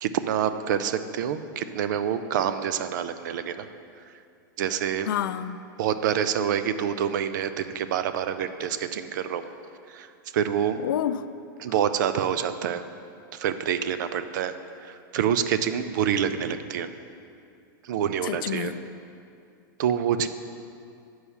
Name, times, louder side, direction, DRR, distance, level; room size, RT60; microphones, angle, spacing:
voice 1, 0.0-3.7 4.6-5.1 5.8-9.4 9.9-10.1 10.3-10.8 11.6-12.8 13.3-14.5 14.8-16.9 17.8-18.7 19.8-20.3, right 9 dB, 60° right, 11 dB, 0.4 m, -27 dB
voice 2, 5.1-5.6 10.8-11.2 18.2-18.8, left 10 dB, 75° left, 13 dB, 0.4 m, -28 dB
7.1 x 4.8 x 6.9 m, 2.5 s
supercardioid pair, 160°, 11 cm